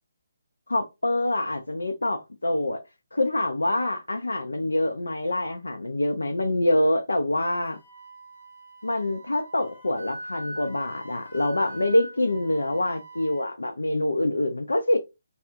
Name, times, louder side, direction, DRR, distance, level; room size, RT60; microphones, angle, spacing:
voice 1, 0.7-2.8 3.1-7.8 8.8-15.0, left 1 dB, 70° left, 0.4 m, -25 dB
Wind instrument woodwind instrument, 7.7-13.5, right 2 dB, 55° left, 0.9 m, -42 dB
2.4 x 2.0 x 2.7 m
figure-of-eight pair, 140°, 0 cm